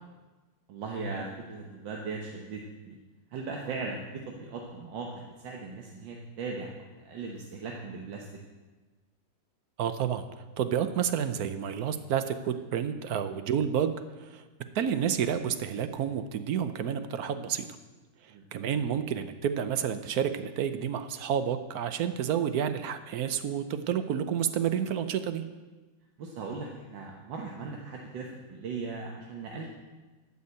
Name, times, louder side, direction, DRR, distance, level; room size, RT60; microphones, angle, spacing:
voice 1, 0.7-3.0 3.3-6.7 7.1-8.3 18.3-18.5 26.2-29.7, right 4 dB, 85° right, 0 dB, 1.8 m, -38 dB
voice 2, 9.8-10.2 10.6-13.9 14.2-14.4 14.7-17.7 18.5-25.4, right 8 dB, 65° right, 10 dB, 1.0 m, -30 dB
12.5 x 5.6 x 7.9 m, 1.2 s
omnidirectional pair, 2.0 m